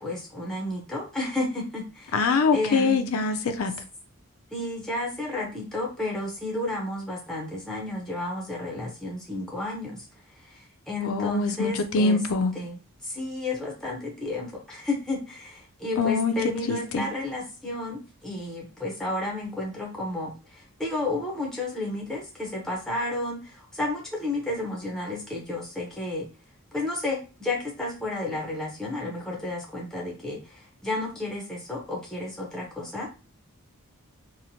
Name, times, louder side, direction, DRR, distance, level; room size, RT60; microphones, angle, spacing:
voice 1, 0.0-3.2 4.5-10.1 10.4-12.2 12.5-26.3 26.7-33.1, left 2 dB, ahead, 0.5 m, -32 dB
voice 2, 2.1-3.7 11.0-12.5 16.0-16.3 16.7-17.0, left 4 dB, 75° left, 0.4 m, -24 dB
2.9 x 2.0 x 2.6 m
head